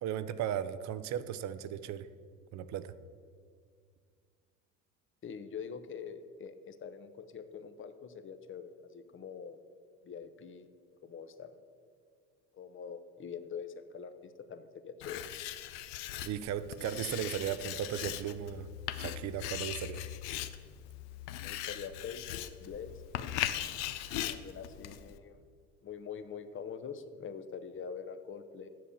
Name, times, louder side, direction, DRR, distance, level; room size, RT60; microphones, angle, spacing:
voice 1, 0.0-2.1 2.5-2.9 16.2-18.7 19.0-20.0, right 10 dB, 50° right, 14 dB, 0.6 m, -36 dB
voice 2, 5.2-9.6 10.0-10.7 11.0-11.6 12.5-15.2 21.4-22.3 22.6-23.0 24.3-25.4 25.8-28.7, left 6 dB, 35° left, 11 dB, 0.8 m, -44 dB
Writing, 15.0-25.2, left 12 dB, 75° left, 0.7 m, -39 dB
7.5 x 6.9 x 7.1 m, 2.1 s
hypercardioid pair, 80°, 37 cm